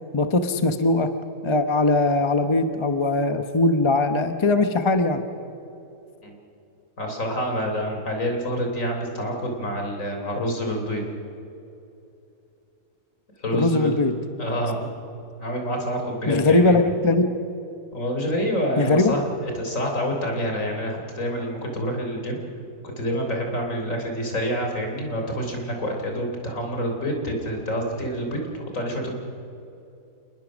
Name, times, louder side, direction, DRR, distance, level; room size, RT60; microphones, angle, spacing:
voice 1, 0.1-1.1 1.4-5.2 13.5-14.2 16.3-17.3 18.8-19.2, left 2 dB, 25° left, 8 dB, 0.8 m, -20 dB
voice 2, 7.0-11.0 13.4-13.9 14.4-14.9 15.4-16.8 17.9-22.4 23.0-29.1, equal, 50° left, 2 dB, 3.9 m, -27 dB
28.0 x 20.0 x 6.3 m, 2.8 s
omnidirectional pair, 1.7 m